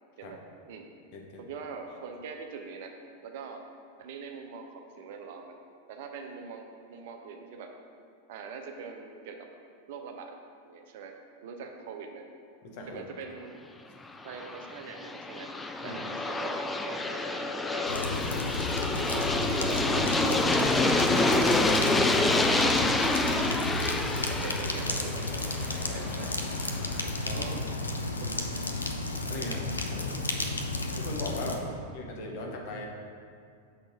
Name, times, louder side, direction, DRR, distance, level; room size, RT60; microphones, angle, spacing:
voice 1, 1.4-2.9 3.2-3.6 4.0-5.5 5.9-7.7 8.3-9.5 9.9-10.3 10.7-11.2 11.4-12.2 12.9-13.5 14.2-15.5 15.8-18.2 19.1-21.8 22.2-22.8 23.3-23.5 24.3-25.3 25.9-26.3 27.2-27.6 28.2-28.5 30.0-30.2 31.5-31.8, right 5 dB, 50° right, 4 dB, 0.7 m, -43 dB
voice 2, 12.6-13.0 15.8-16.0 23.3-23.5 25.9-26.3 27.3-27.6 29.3-29.6 29.9-30.1 30.9-31.6 31.9-32.9, left 2 dB, 45° left, 1 dB, 1.0 m, -39 dB
Aircraft, 14.2-27.0, left 2 dB, 10° left, 0.3 m, -28 dB
sound 1, 17.9-31.6, left 2 dB, 75° left, 0.5 m, -33 dB
6.4 x 3.9 x 4.9 m, 2.3 s
figure-of-eight pair, 90°, 0 cm